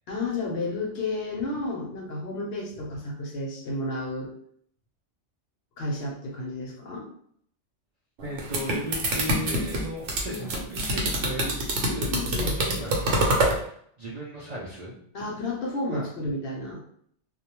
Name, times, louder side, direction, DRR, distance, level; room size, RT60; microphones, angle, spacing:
voice 1, 0.1-4.3 5.8-7.1 10.3-10.5 12.1-12.6 15.1-16.8, left 2 dB, 65° left, -1 dB, 0.8 m, -31 dB
voice 2, 8.2-14.9 15.9-16.1, equal, 55° right, -6 dB, 0.5 m, -36 dB
sound 1, 8.2-13.6, right 1 dB, 85° right, 1.0 m, -25 dB
2.3 x 2.1 x 2.9 m, 0.65 s
omnidirectional pair, 1.2 m